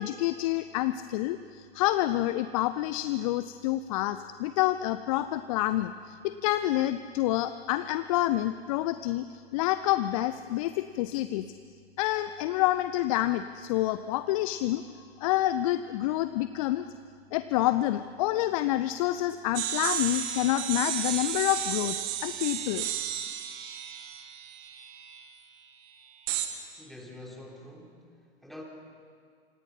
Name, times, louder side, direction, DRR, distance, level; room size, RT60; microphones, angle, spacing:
voice 1, 0.0-9.2 9.5-11.5 12.0-16.8 17.3-22.0 22.2-22.9, left 15 dB, 35° left, 12 dB, 0.6 m, -28 dB
sound 1, 19.5-25.2 26.3-26.5, right 10 dB, 40° right, 2.1 m, -33 dB
voice 2, 26.8-28.6, left 1 dB, ahead, -1 dB, 3.6 m, -46 dB
27.0 x 26.0 x 5.7 m, 2.1 s
figure-of-eight pair, 105°, 32 cm